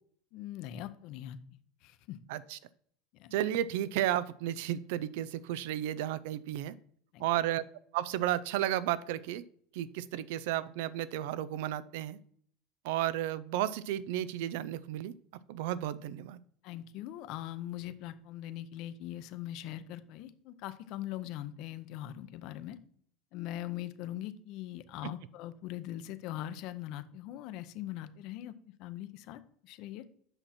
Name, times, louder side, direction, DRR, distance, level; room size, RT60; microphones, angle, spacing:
voice 1, 0.3-1.4 1.8-2.2 3.1-3.3 7.1-7.3 16.6-22.8 23.3-28.5 28.8-30.1, left 13 dB, 55° left, 12 dB, 0.7 m, -41 dB
voice 2, 3.3-6.8 7.2-7.6 7.9-9.4 9.7-12.2 12.8-15.1 15.5-16.4 25.0-25.1, right 12 dB, 75° right, 17 dB, 0.5 m, -33 dB
7.9 x 6.0 x 4.3 m, 0.62 s
supercardioid pair, 150°, 0 cm